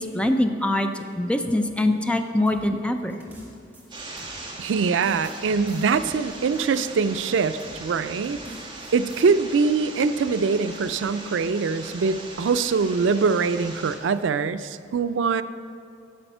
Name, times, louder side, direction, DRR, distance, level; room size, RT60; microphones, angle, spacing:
voice 1, 0.0-3.2, left 1 dB, 5° left, 6 dB, 0.5 m, -24 dB
sound 1, 2.5-4.6 5.0-7.2 7.6-7.8 8.2-9.3, equal, 10° right, 1.8 m, -46 dB
sound 2, 3.9-13.9, right 2 dB, 25° right, 1.4 m, -39 dB
voice 2, 4.6-8.4 8.9-15.4, right 5 dB, 85° right, 13 dB, 0.4 m, -23 dB
11.0 x 7.2 x 5.5 m, 2.4 s
head